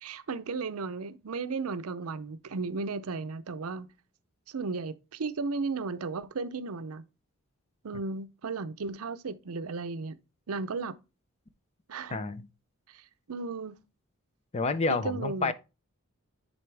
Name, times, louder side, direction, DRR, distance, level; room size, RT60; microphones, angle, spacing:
voice 1, 0.0-3.9 4.5-7.0 7.8-10.2 10.5-10.9 11.9-12.2 12.9-13.7 15.0-15.5, right 4 dB, 75° right, 0.6 m, -35 dB
voice 2, 12.1-12.5 14.5-15.5, left 3 dB, 30° left, 0.5 m, -29 dB
10.0 x 4.0 x 3.3 m
head